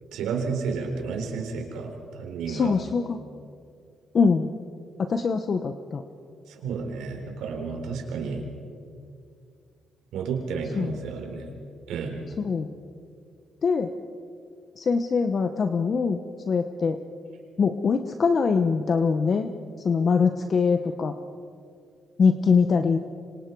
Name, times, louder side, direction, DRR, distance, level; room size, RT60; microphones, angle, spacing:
voice 1, 0.1-2.7 6.5-8.4 10.1-11.5 11.9-12.2, right 5 dB, 85° right, 3 dB, 4.0 m, -31 dB
voice 2, 2.5-3.2 4.1-4.5 5.0-6.0 10.8-11.0 12.4-12.7 13.6-13.9 14.8-16.2 16.5-17.0 17.6-19.5 19.8-21.1 22.2-23.0, left 5 dB, 45° left, 7 dB, 1.0 m, -23 dB
26.5 x 26.0 x 4.7 m, 2.3 s
cardioid pair, 90°, 0 cm